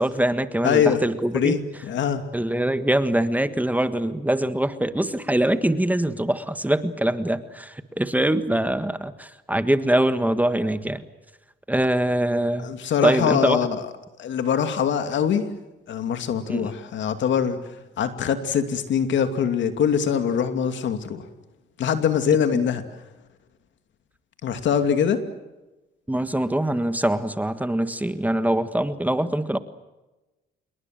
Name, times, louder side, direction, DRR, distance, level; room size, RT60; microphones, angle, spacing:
voice 1, 0.0-1.6 2.3-11.0 11.7-12.7 13.0-13.6 16.5-16.7 22.5-22.6 26.1-29.6, right 1 dB, 10° right, 11 dB, 1.6 m, -23 dB
voice 2, 0.6-1.0 1.3-2.2 12.6-13.8 14.2-15.4 15.9-17.6 18.0-21.3 21.8-22.8 24.4-25.2, left 8 dB, 70° left, 8 dB, 2.6 m, -23 dB
27.0 x 22.5 x 7.8 m, 1.1 s
cardioid pair, 90°, 20 cm